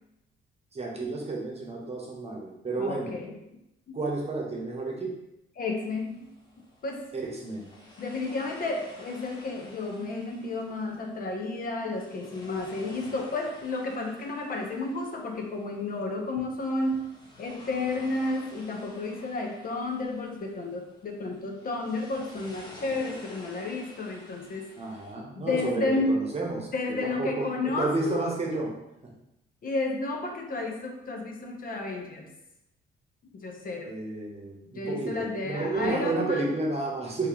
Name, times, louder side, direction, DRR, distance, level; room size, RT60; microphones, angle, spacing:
voice 1, 0.7-3.1 3.9-5.1 7.1-7.7 24.8-28.7 33.9-37.3, right 3 dB, 30° right, -2 dB, 1.0 m, -31 dB
voice 2, 2.8-3.3 3.9-4.0 5.6-6.3 6.8-7.1 8.0-17.1 17.4-24.7 25.4-26.2 26.7-28.2 29.6-32.3 33.3-33.9 34.7-36.5, left 2 dB, 45° left, 2 dB, 0.6 m, -31 dB
sound 1, 5.9-25.1, left 1 dB, 20° left, 0.9 m, -51 dB
2.8 x 2.8 x 3.8 m, 0.87 s
cardioid pair, 90°, 20 cm